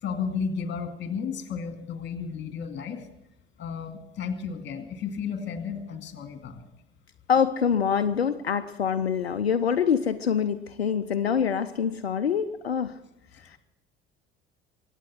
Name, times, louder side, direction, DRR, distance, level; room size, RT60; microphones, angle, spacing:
voice 1, 0.0-3.1 3.6-6.7, left 6 dB, 35° left, 7 dB, 2.3 m, -33 dB
voice 2, 7.3-13.0 13.3-13.6, left 7 dB, 85° left, 11 dB, 0.6 m, -25 dB
23.5 x 9.1 x 6.2 m, 0.88 s
figure-of-eight pair, 60°, 30 cm